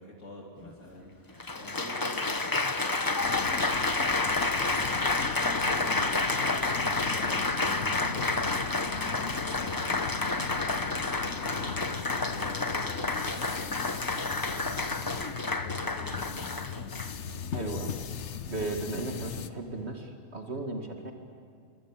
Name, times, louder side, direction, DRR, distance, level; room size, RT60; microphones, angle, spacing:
voice 1, 0.0-4.9 5.2-8.3 8.7-16.4, left 1 dB, 90° left, -1 dB, 3.7 m, -46 dB
Applause, 0.6-0.7 1.4-17.3 18.0-18.4, left 3 dB, 20° left, 0.8 m, -30 dB
sound 1, 3.2-19.5, left 7 dB, 70° left, 1.2 m, -39 dB
voice 2, 17.5-18.0 18.5-21.1, right 2 dB, 60° right, 3 dB, 2.3 m, -35 dB
28.0 x 23.0 x 8.9 m, 2.4 s
omnidirectional pair, 1.2 m